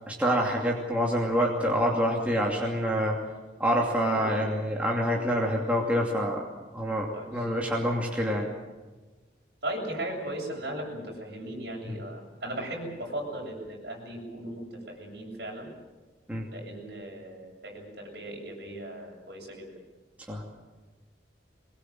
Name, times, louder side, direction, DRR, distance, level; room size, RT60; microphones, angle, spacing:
voice 1, 0.1-3.2 3.6-6.5 6.7-8.5 11.8-12.0 16.3-16.5 20.3-20.4, equal, 10° right, -2 dB, 2.6 m, -26 dB
voice 2, 7.1-7.5 9.6-15.7 16.5-19.7, right 1 dB, 60° right, -1 dB, 7.9 m, -37 dB
22.5 x 21.5 x 7.8 m, 1.2 s
head